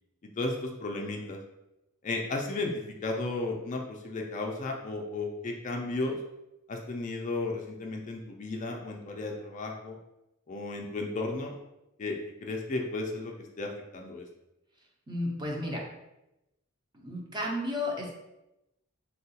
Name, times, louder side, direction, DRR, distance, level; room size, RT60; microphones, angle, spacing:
voice 1, 0.4-1.4 2.0-6.2 6.7-10.0 10.5-11.6 12.0-14.2, left 2 dB, 35° left, 1 dB, 0.4 m, -34 dB
voice 2, 15.1-15.8 16.9-18.1, left 1 dB, 20° right, -2 dB, 0.6 m, -33 dB
3.6 x 2.3 x 2.8 m, 0.92 s
head